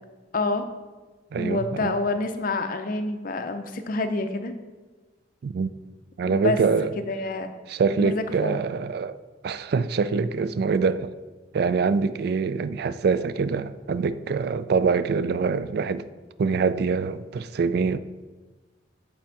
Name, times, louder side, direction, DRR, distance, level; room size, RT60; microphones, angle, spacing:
voice 1, 0.3-0.7 1.4-4.5 6.2-6.6 7.0-7.5 8.0-8.6, left 2 dB, 50° left, 0.6 m, -27 dB
voice 2, 1.3-1.9 5.4-5.7 6.2-6.9 7.7-11.1 11.5-16.0 16.4-18.0, right 5 dB, 60° right, 0.3 m, -24 dB
8.5 x 3.4 x 5.8 m
head